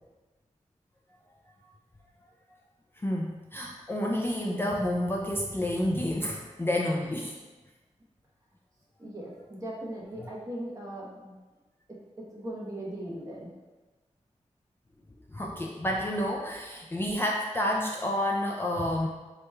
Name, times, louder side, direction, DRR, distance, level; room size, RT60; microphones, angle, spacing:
voice 1, 3.0-7.4 15.3-19.1, left 1 dB, 20° left, -1 dB, 0.3 m, -29 dB
voice 2, 9.0-11.3 11.9-13.5, right 1 dB, 25° right, -4 dB, 0.9 m, -39 dB
4.4 x 2.9 x 2.2 m, 1.2 s
wide cardioid pair, 70°, 13 cm